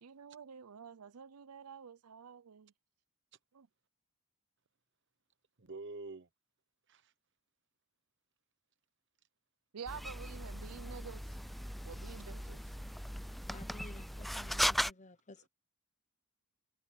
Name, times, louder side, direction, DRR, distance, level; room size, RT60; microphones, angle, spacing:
voice 1, 0.0-2.7 3.5-3.7 9.7-11.4 11.9-12.7, right 6 dB, 90° right, 0.6 m, -49 dB
voice 2, 5.6-6.3 6.9-7.1, right 3 dB, 55° right, 1.0 m, -46 dB
sound 1, 9.9-14.9, equal, ahead, 0.4 m, -38 dB
voice 3, 13.5-15.5, left 2 dB, 35° left, 1.0 m, -54 dB
head